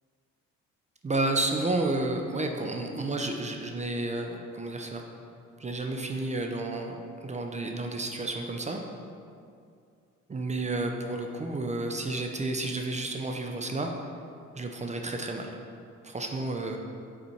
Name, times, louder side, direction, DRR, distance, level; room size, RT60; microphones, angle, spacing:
voice 1, 1.0-5.0 5.6-8.8 10.3-13.9 14.5-15.5 16.0-16.8, right 2 dB, 25° right, 2 dB, 0.5 m, -31 dB
5.5 x 4.1 x 4.5 m, 2.4 s
cardioid pair, 90°, 30 cm